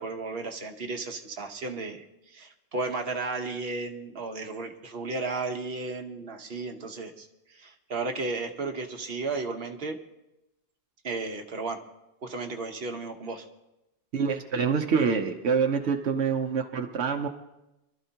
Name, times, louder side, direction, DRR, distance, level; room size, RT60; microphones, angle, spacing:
voice 1, 0.0-10.0 11.0-11.8 12.2-13.5, right 3 dB, 65° right, 4 dB, 1.3 m, -34 dB
voice 2, 14.1-17.3, right 6 dB, 85° right, 4 dB, 1.1 m, -26 dB
24.5 x 12.5 x 2.9 m, 0.94 s
omnidirectional pair, 1.1 m